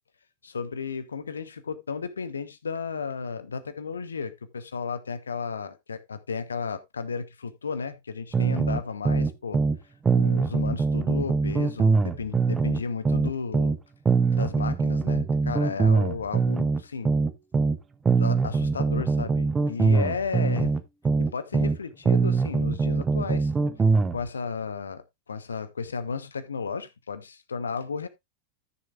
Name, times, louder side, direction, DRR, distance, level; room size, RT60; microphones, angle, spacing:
voice 1, 0.4-9.6 10.1-13.8 14.3-17.1 18.2-20.8 21.2-23.5 24.1-28.1, left 5 dB, 70° left, 0.9 m, -33 dB
sound 1, 8.3-9.8 10.1-13.8 14.1-17.8 18.1-21.8 22.1-24.2, right 4 dB, 15° right, 0.8 m, -23 dB
14.0 x 6.8 x 2.5 m
figure-of-eight pair, 90°, 0 cm